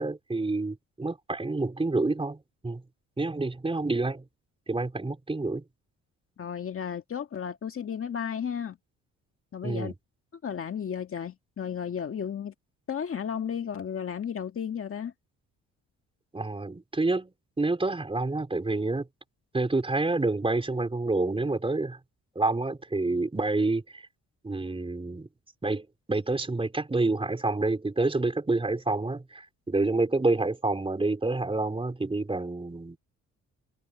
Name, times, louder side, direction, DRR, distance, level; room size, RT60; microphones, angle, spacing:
voice 1, 0.0-2.8 3.2-4.2 4.7-5.6 9.6-9.9 16.3-19.1 19.5-22.0 22.4-24.0 24.4-25.3 25.6-33.0, right 2 dB, 20° right, 4.3 m, -28 dB
voice 2, 6.4-8.8 9.5-9.9 10.4-12.5 12.9-15.1, left 8 dB, 45° left, 1.9 m, -33 dB
cardioid pair, 90°, 30 cm